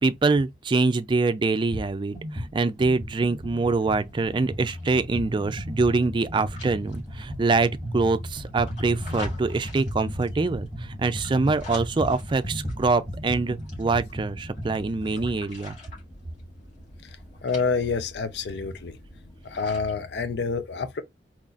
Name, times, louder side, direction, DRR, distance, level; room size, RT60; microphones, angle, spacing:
voice 1, 0.0-15.8, right 3 dB, 25° right, 0.3 m, -24 dB
sound 1, 1.7-1.9 2.1-15.4, equal, 25° left, 1.9 m, -35 dB
sound 2, 3.0-19.9, left 2 dB, 45° left, 1.9 m, -46 dB
voice 2, 17.4-19.0 19.4-21.0, left 4 dB, 75° left, 0.6 m, -28 dB
4.0 x 2.9 x 2.4 m
head